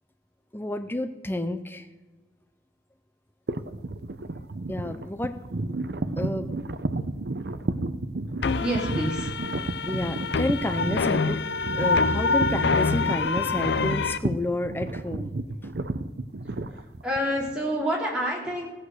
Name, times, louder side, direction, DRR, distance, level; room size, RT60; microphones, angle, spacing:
voice 1, 0.5-1.9 4.7-5.4 6.2-6.5 9.9-11.4 11.8-15.3 15.6-15.7, left 1 dB, 10° left, 8 dB, 0.6 m, -30 dB
sound 1, 3.5-17.5, right 2 dB, 60° right, 0.7 m, -32 dB
sound 2, 8.4-14.2, left 4 dB, 70° left, 0.5 m, -26 dB
voice 2, 8.6-9.6 16.4-18.7, equal, 5° right, -4 dB, 3.4 m, -29 dB
15.5 x 8.3 x 6.3 m, 1.2 s
head